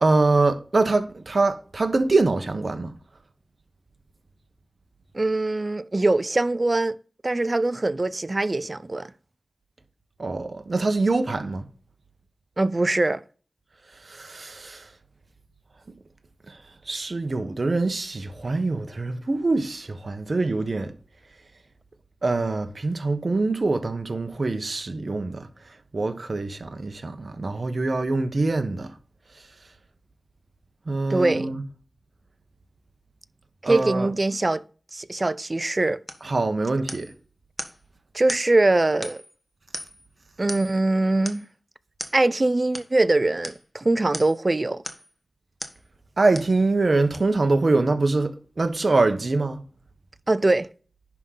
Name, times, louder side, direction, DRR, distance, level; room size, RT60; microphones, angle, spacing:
voice 1, 0.0-2.9 10.2-11.6 14.1-14.8 16.9-20.9 22.2-25.4 25.9-28.9 30.9-31.6 33.6-34.1 36.2-37.1 46.2-48.3 48.6-49.6, right 3 dB, 55° right, 1.1 m, -24 dB
voice 2, 5.1-7.0 7.2-9.1 12.6-13.2 31.1-31.5 33.6-34.6 34.9-36.0 38.1-39.2 40.4-41.5 42.1-44.8 50.3-50.7, right 2 dB, 40° right, 0.6 m, -22 dB
sound 1, 36.1-36.3 36.9-37.2 37.6-37.8 38.3-38.5 39.0-39.4 39.7-40.1 40.5-40.8 41.3-41.5 42.0-42.2 42.7-42.9 43.4-43.6 44.1-44.4 44.8-45.1 45.6-45.8 46.3-46.6 47.1-47.2, left 1 dB, 20° left, 1.4 m, -37 dB
10.5 x 3.8 x 5.6 m
wide cardioid pair, 55°, 0 cm